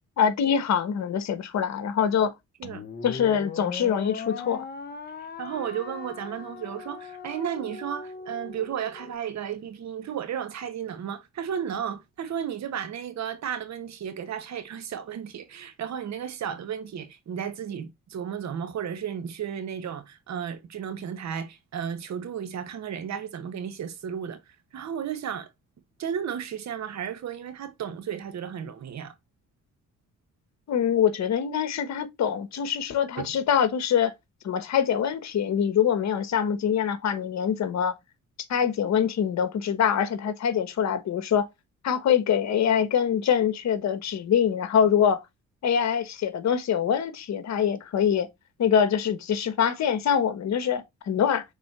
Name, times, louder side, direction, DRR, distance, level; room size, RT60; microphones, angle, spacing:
voice 1, 0.2-2.3 3.0-4.6 30.7-34.1 34.4-37.9 38.5-41.5 41.8-45.2 45.6-48.3 48.6-51.4, left 8 dB, 65° left, 1.4 m, -24 dB
sound 1, 2.6-9.1, left 4 dB, 35° left, 1.0 m, -39 dB
voice 2, 5.4-24.4 24.7-25.5 26.0-29.1 33.2-33.4, right 8 dB, 65° right, 1.3 m, -33 dB
5.4 x 4.2 x 4.2 m
cardioid pair, 90°, 30 cm